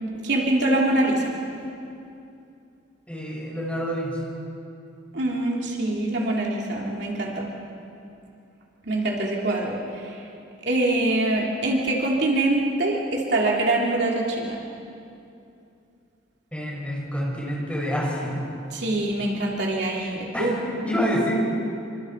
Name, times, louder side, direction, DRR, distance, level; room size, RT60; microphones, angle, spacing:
voice 1, 0.2-1.4 5.1-7.5 8.8-10.3 10.6-14.7 18.7-20.5, right 2 dB, 60° right, -2 dB, 3.0 m, -24 dB
voice 2, 3.1-4.2 16.5-18.4 20.3-21.4, equal, 5° left, -4 dB, 6.3 m, -27 dB
27.5 x 26.0 x 4.7 m, 2.6 s
head